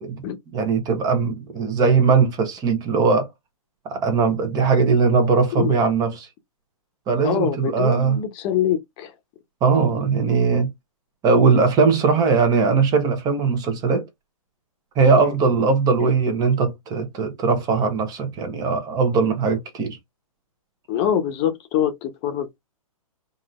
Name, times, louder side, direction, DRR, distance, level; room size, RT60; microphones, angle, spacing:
voice 1, 0.5-3.3 3.8-6.3 7.1-8.2 9.6-10.7 11.2-14.0 15.0-20.0, right 5 dB, 20° right, 0.9 m, -19 dB
voice 2, 7.2-9.1 15.2-15.3 20.9-22.6, left 9 dB, 30° left, 0.9 m, -24 dB
5.1 x 2.6 x 2.5 m
figure-of-eight pair, 125°, 19 cm